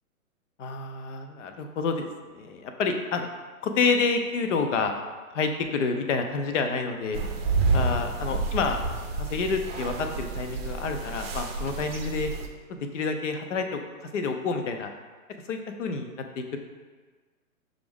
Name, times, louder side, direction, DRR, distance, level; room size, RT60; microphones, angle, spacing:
voice 1, 0.6-2.1 2.3-3.3 3.6-4.9 5.3-7.2 7.7-8.8 9.2-12.3 12.7-14.9 15.5-16.6, left 4 dB, 60° left, 5 dB, 0.6 m, -28 dB
sound 1, 7.1-12.5, right 3 dB, 45° right, 0.6 m, -29 dB
5.9 x 2.5 x 3.5 m, 1.4 s
figure-of-eight pair, 120°, 42 cm